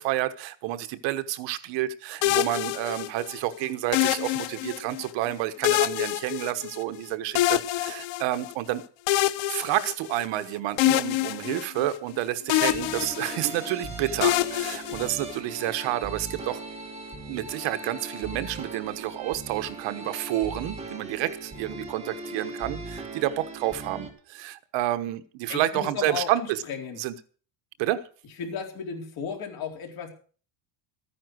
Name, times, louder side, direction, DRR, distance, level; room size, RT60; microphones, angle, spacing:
voice 1, 0.0-8.8 9.5-16.6 17.3-26.6 27.0-27.1 27.8-28.1, right 14 dB, 70° right, 1.2 m, -29 dB
sound 1, 2.2-3.4 3.9-5.1 5.6-7.0 7.4-8.5 9.1-10.4 10.8-12.2 12.5-13.7 14.2-15.6, left 16 dB, 75° left, 1.0 m, -26 dB
sound 2, 12.6-24.1, right 2 dB, 15° right, 2.3 m, -39 dB
voice 2, 25.5-27.0 28.4-30.1, left 6 dB, 50° left, 4.0 m, -35 dB
14.0 x 10.0 x 6.3 m
cardioid pair, 165°, 46 cm